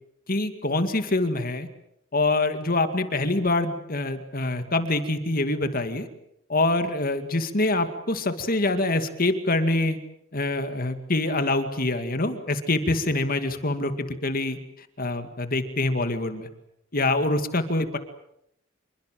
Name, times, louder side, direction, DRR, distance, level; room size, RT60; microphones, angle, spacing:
voice 1, 0.3-1.7 2.1-6.1 6.5-10.0 10.3-14.6 15.0-16.5 16.9-18.0, left 2 dB, 45° left, 8 dB, 2.2 m, -25 dB
27.0 x 23.0 x 7.7 m, 0.77 s
head